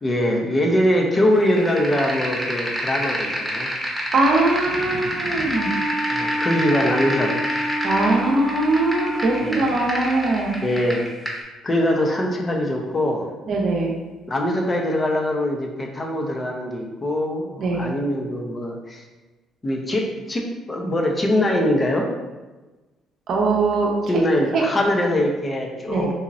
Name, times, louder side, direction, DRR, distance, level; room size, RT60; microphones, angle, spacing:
voice 1, 0.0-3.7 6.1-7.4 9.4-9.6 10.6-11.1 11.6-13.3 14.3-19.0 19.6-22.1 24.1-26.1, left 1 dB, 30° left, 1 dB, 0.8 m, -22 dB
sound 1, 1.4-11.4, equal, 5° left, 1.0 m, -28 dB
voice 2, 4.1-5.7 7.8-10.5 13.5-13.9 17.6-17.9 23.3-23.9 24.1-24.2 24.5-24.6 25.9-26.1, right 2 dB, 60° right, 0 dB, 0.7 m, -21 dB
Wind instrument woodwind instrument, 5.5-9.7, equal, 55° left, 0.4 m, -28 dB
4.0 x 2.9 x 2.7 m, 1.2 s
hypercardioid pair, 55°, 0 cm